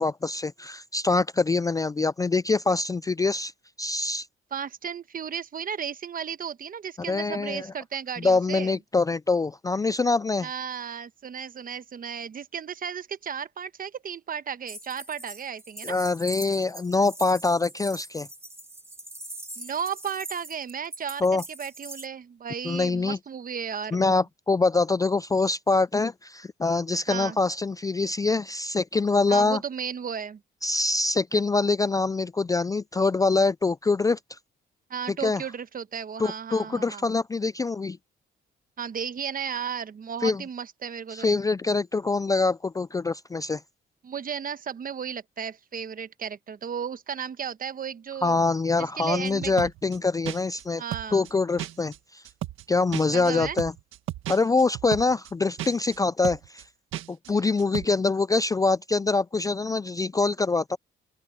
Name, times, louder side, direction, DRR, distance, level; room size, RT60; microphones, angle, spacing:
voice 1, 0.0-3.5 3.8-4.3 7.1-7.7 8.2-10.5 15.8-18.3 21.2-21.4 22.6-23.2 23.9-29.6 30.6-34.2 35.1-35.4 36.2-38.0 40.2-40.4 41.1-43.6 48.2-50.8 51.1-52.2 52.7-53.7 54.3-56.6 57.1-60.8, left 3 dB, 15° left, 0.3 m, -24 dB
voice 2, 4.5-8.7 10.4-16.0 19.6-24.2 27.1-27.4 29.3-30.4 34.9-37.0 38.8-41.3 44.0-48.4 48.8-49.5 50.8-51.3 53.1-53.6 57.3-57.4, right 7 dB, 45° right, 1.2 m, -34 dB
sound 1, 14.7-22.1, right 2 dB, 15° right, 2.7 m, -42 dB
sound 2, 49.2-50.0 50.2-50.6 50.9-51.3 51.6-52.0 52.2-52.6 52.9-55.3 55.6-56.0 56.2-56.6 56.9-57.3 57.6-57.8, right 13 dB, 85° right, 1.7 m, -34 dB
open air
cardioid pair, 90°, 20 cm